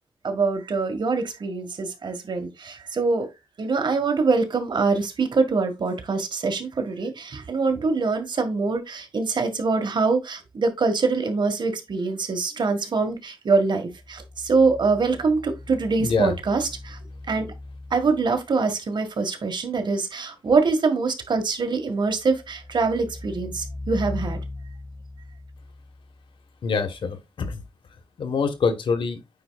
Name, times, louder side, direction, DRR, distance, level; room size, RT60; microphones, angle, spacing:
voice 1, 0.2-3.3 3.6-17.0 17.3-17.5 17.9-24.4, right 4 dB, 65° right, 1.7 m, -24 dB
sound 1, 13.9-18.6 21.9-26.5 28.6-28.7, left 2 dB, 35° right, 2.4 m, -39 dB
voice 2, 16.0-16.3 26.6-27.6 28.2-29.2, left 5 dB, 85° left, 1.4 m, -25 dB
9.4 x 4.4 x 2.4 m
wide cardioid pair, 90°, 9 cm